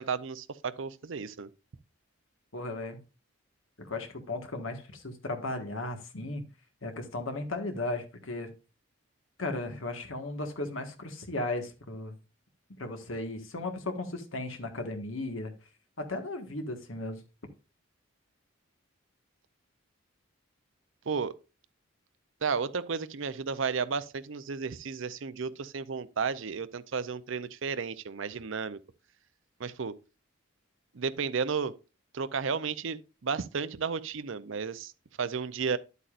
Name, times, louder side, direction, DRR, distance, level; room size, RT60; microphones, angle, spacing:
voice 1, 0.0-1.5 21.1-21.3 22.4-28.8 29.6-30.0 30.9-31.7 32.1-34.9 35.2-35.8, right 5 dB, 65° right, 0.6 m, -33 dB
voice 2, 2.5-3.0 3.8-6.4 6.8-8.5 9.4-12.2 12.8-15.5 16.0-17.2, left 2 dB, 70° left, 1.6 m, -36 dB
10.5 x 8.3 x 2.5 m
head